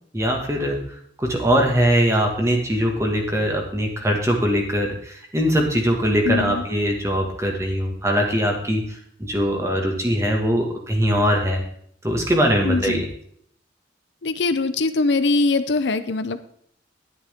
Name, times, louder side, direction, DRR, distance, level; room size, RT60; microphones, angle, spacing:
voice 1, 0.1-0.8 1.2-11.6 12.0-13.1, equal, 15° right, 1 dB, 1.8 m, -21 dB
voice 2, 6.3-6.6 12.6-13.0 14.2-16.5, left 3 dB, 70° left, 11 dB, 0.7 m, -22 dB
11.0 x 10.0 x 3.7 m, 0.64 s
head